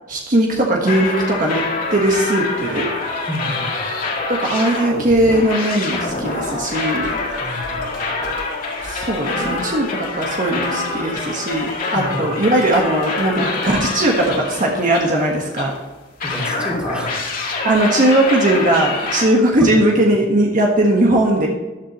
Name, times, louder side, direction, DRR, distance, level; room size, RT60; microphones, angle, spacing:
voice 1, 0.1-2.9 4.3-7.1 8.8-9.9 10.1-15.7 17.6-21.5, right 1 dB, 45° right, -1 dB, 1.4 m, -18 dB
sound 1, 0.9-15.8 16.2-19.3, left 3 dB, 50° left, 2.0 m, -26 dB
voice 2, 3.3-3.8 7.3-8.4 9.3-9.6 11.9-12.4 16.2-17.2 19.6-19.8, equal, 5° right, -3 dB, 2.6 m, -29 dB
sound 2, 6.0-13.4 13.6-14.3, left 1 dB, 65° left, 3.4 m, -38 dB
13.5 x 11.0 x 3.1 m, 1.2 s
head